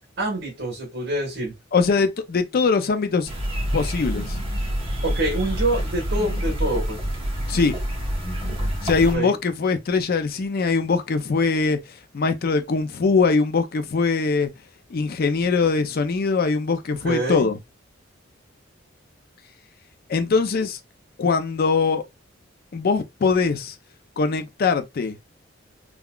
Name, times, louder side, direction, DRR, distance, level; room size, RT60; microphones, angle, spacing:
voice 1, 0.2-1.5 5.0-7.0 9.1-9.4 17.0-17.5, right 1 dB, 60° right, 1.3 m, -26 dB
voice 2, 1.7-3.3 3.7-4.4 7.5-7.7 8.8-11.8 12.1-14.5 14.9-17.6 20.1-20.8 21.2-22.0 22.7-23.7 24.2-25.2, left 4 dB, 50° left, 0.4 m, -22 dB
sound 1, 3.3-9.2, equal, 25° right, 1.0 m, -27 dB
3.6 x 2.2 x 2.3 m
head